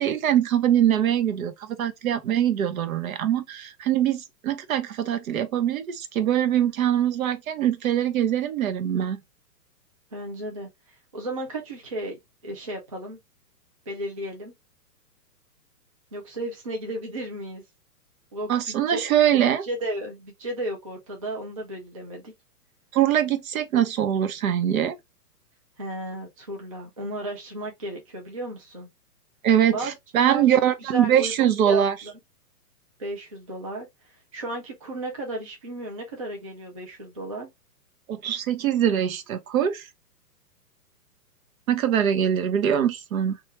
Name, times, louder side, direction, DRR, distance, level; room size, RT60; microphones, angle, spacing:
voice 1, 0.0-9.2 18.5-19.6 22.9-25.0 29.4-31.9 38.1-39.8 41.7-43.4, right 10 dB, 60° right, 0.7 m, -23 dB
voice 2, 10.1-13.2 13.9-14.5 16.1-17.6 18.3-19.1 19.6-22.3 25.8-28.9 29.7-29.9 30.2-32.1 33.0-37.5, right 1 dB, 25° right, 0.3 m, -34 dB
2.7 x 2.4 x 2.9 m
hypercardioid pair, 145°, 48 cm